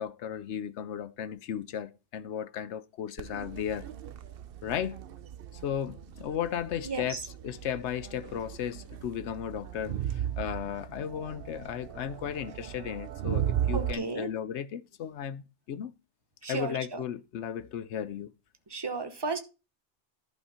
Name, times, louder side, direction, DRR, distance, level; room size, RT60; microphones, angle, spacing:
voice 1, 0.0-3.9 4.6-5.0 5.6-7.2 7.4-15.9 16.5-18.3, left 9 dB, 80° left, 1.0 m, -35 dB
Crowd, 3.2-13.9, right 11 dB, 60° right, 0.8 m, -36 dB
voice 2, 6.9-7.2 13.7-14.3 16.4-17.0 18.7-19.4, right 4 dB, 25° right, 1.0 m, -34 dB
11.5 x 4.4 x 5.7 m
omnidirectional pair, 1.2 m